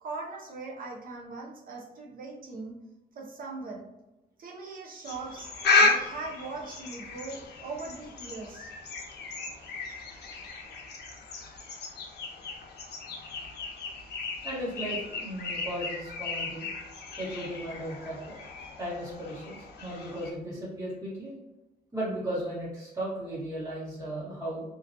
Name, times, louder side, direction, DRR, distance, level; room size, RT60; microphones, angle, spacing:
voice 1, 0.0-2.8 3.1-3.9 4.4-5.5 5.8-8.7, right 3 dB, 55° right, -1 dB, 0.6 m, -40 dB
sound 1, 5.0-20.3, left 3 dB, 85° left, 0.5 m, -33 dB
voice 2, 14.4-16.7 17.2-18.4 18.8-21.3 21.9-24.6, right 1 dB, 20° right, -8 dB, 1.3 m, -36 dB
2.3 x 2.2 x 2.6 m, 0.98 s
wide cardioid pair, 145°, 17 cm